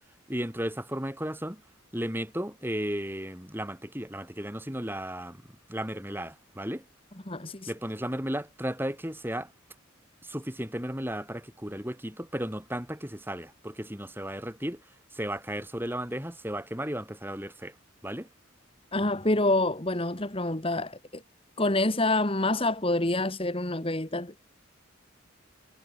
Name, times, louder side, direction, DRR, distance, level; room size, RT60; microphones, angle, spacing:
voice 1, 0.3-1.6 1.9-5.4 5.7-6.8 7.7-9.5 10.2-14.8 15.1-17.7 18.0-18.3, equal, 10° right, 7.7 m, -34 dB
voice 2, 7.3-7.7 18.9-21.2 21.6-24.4, left 2 dB, 25° left, 1.9 m, -27 dB
head